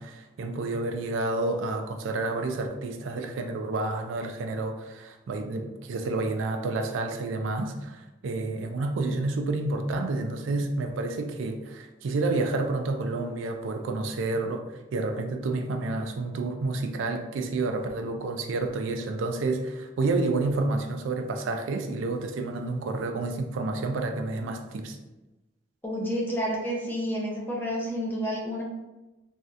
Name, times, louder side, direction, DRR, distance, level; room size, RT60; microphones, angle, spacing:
voice 1, 0.0-14.6 14.9-25.0, right 3 dB, 85° right, 5 dB, 0.4 m, -29 dB
voice 2, 25.8-28.6, equal, 10° left, -3 dB, 0.6 m, -30 dB
3.1 x 2.7 x 2.4 m, 1.1 s
head